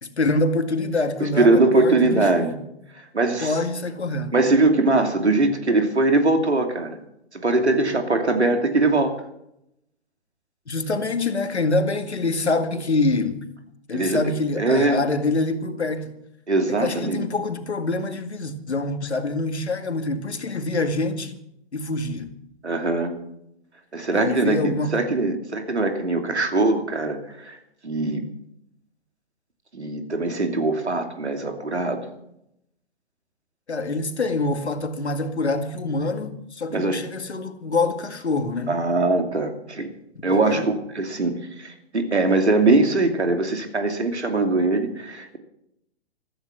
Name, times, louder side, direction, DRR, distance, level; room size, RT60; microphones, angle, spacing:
voice 1, 0.0-2.6 3.4-4.3 10.7-13.4 13.9-16.1 16.7-21.4 21.7-22.3 24.1-25.0 33.7-38.8 40.3-40.6, left 3 dB, 85° left, 2.0 m, -25 dB
voice 2, 1.2-2.5 2.9-3.6 4.3-7.0 7.3-9.1 13.9-14.2 14.5-15.0 16.5-17.3 22.6-23.2 23.9-27.6 27.8-28.3 29.7-32.1 36.7-37.0 38.7-39.9 40.2-45.4, right 2 dB, 90° right, 2.8 m, -21 dB
15.0 x 14.0 x 6.1 m
figure-of-eight pair, 125°, 32 cm